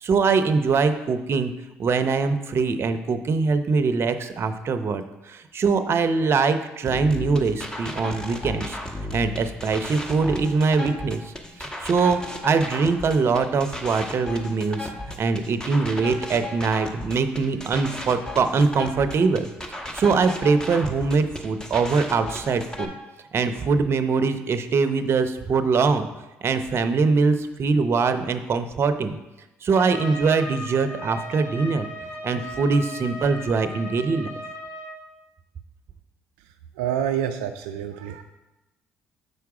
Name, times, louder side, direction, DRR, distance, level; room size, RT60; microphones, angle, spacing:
voice 1, 0.0-1.5 1.8-5.0 5.3-8.8 9.1-11.2 11.6-14.9 15.2-19.5 19.9-22.9 23.3-26.1 26.4-29.2 29.6-31.9 32.2-34.4, right 4 dB, 50° right, 10 dB, 0.7 m, -22 dB
sound 1, 6.9-22.9, left 1 dB, 15° left, 1.2 m, -35 dB
Trumpet, 29.7-35.0, left 1 dB, 75° left, 2.6 m, -37 dB
voice 2, 36.8-38.2, right 9 dB, 85° right, 6 dB, 0.4 m, -27 dB
6.8 x 4.7 x 4.8 m, 1.0 s
hypercardioid pair, 60°, 6 cm